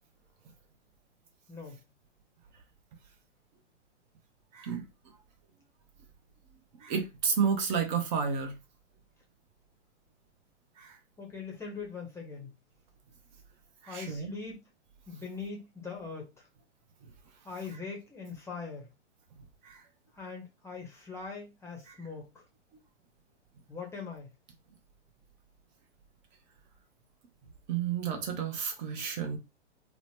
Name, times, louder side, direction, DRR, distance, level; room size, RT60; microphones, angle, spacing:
voice 1, 4.5-4.9 6.8-8.6 10.8-11.0 13.8-14.3 19.6-19.8 21.9-22.0 27.7-29.4, right 6 dB, 40° right, 0.7 m, -31 dB
voice 2, 11.2-12.5 13.9-14.6 15.1-16.5 17.4-18.9 20.1-22.4 23.7-24.3, left 5 dB, 5° left, 0.7 m, -41 dB
2.9 x 2.1 x 3.2 m
hypercardioid pair, 125°, 36 cm